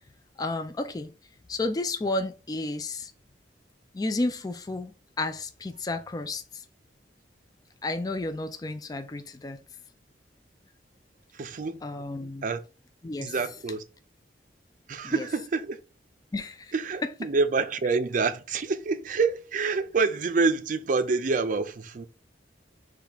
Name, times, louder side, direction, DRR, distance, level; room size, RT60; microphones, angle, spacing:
voice 1, 0.4-1.1 1.5-3.1 3.9-6.6 7.8-9.6 11.8-12.5 13.0-13.3 15.0-15.3 16.3-16.7, left 2 dB, 20° left, 0.4 m, -32 dB
voice 2, 11.3-11.8 12.4-12.6 13.2-13.8 14.9-15.8 16.7-22.1, right 4 dB, 50° right, 0.4 m, -27 dB
5.9 x 2.4 x 3.4 m
head